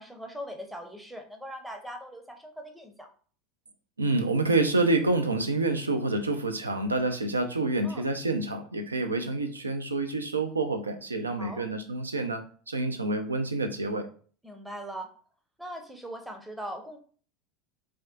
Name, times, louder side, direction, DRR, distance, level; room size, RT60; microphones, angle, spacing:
voice 1, 0.0-3.1 7.8-8.0 11.4-11.6 14.4-15.1 15.6-17.0, equal, 5° right, 3 dB, 0.6 m, -40 dB
voice 2, 4.0-14.1, right 2 dB, 85° right, 7 dB, 0.3 m, -28 dB
3.5 x 2.3 x 2.4 m, 0.43 s
figure-of-eight pair, 75°, 0 cm